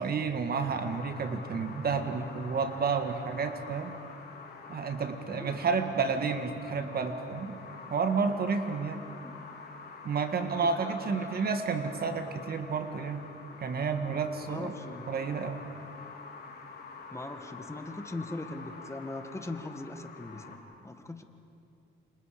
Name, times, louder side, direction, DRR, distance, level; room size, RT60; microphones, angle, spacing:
voice 1, 0.0-3.9 4.7-7.6 7.9-9.0 10.0-13.2 13.6-14.7 15.1-15.6, right 5 dB, 50° right, 7 dB, 1.7 m, -31 dB
sound 1, 0.6-20.6, left 4 dB, 55° left, 3.5 m, -47 dB
voice 2, 10.6-11.4 14.4-15.1 17.1-20.6 20.8-21.2, left 2 dB, 15° left, 7 dB, 1.9 m, -40 dB
28.5 x 26.0 x 5.1 m, 2.6 s
cardioid pair, 90°, 20 cm